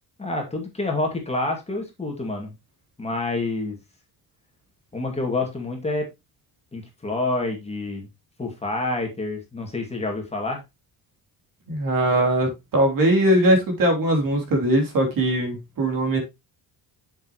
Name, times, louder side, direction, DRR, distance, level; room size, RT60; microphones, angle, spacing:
voice 1, 0.2-2.5 3.0-3.8 4.9-6.1 6.7-8.1 8.4-10.6, left 2 dB, 15° left, 2.3 m, -28 dB
voice 2, 11.7-16.2, right 1 dB, 55° right, 3.2 m, -20 dB
7.4 x 7.1 x 3.0 m
cardioid pair, 130°, 40 cm